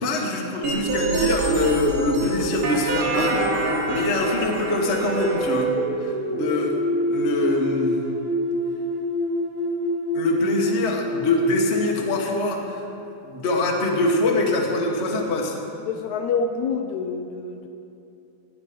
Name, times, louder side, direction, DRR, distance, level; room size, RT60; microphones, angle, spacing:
voice 1, 0.0-5.7 6.0-6.8 7.1-8.0 10.1-12.8 13.2-15.6, left 2 dB, 35° left, 0 dB, 1.0 m, -24 dB
sound 1, 0.6-5.6, right 3 dB, 50° right, 2.4 m, -25 dB
sound 2, 4.8-12.2, equal, 70° right, 2.9 m, -26 dB
voice 2, 15.8-17.7, left 5 dB, 75° left, 5 dB, 1.9 m, -27 dB
17.5 x 10.0 x 5.2 m, 2.8 s
omnidirectional pair, 3.6 m